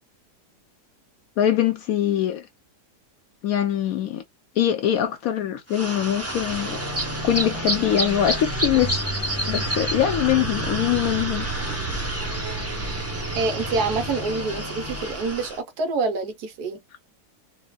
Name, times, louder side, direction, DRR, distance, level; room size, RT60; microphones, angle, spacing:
voice 1, 1.4-2.4 3.4-4.2 4.6-6.8 7.2-9.0 9.5-11.4, left 10 dB, 70° left, 0.9 m, -23 dB
sound 1, 5.7-15.6, right 1 dB, 15° right, 0.5 m, -28 dB
voice 2, 13.3-16.8, right 4 dB, 70° right, 1.3 m, -26 dB
4.2 x 2.2 x 2.2 m
omnidirectional pair, 1.8 m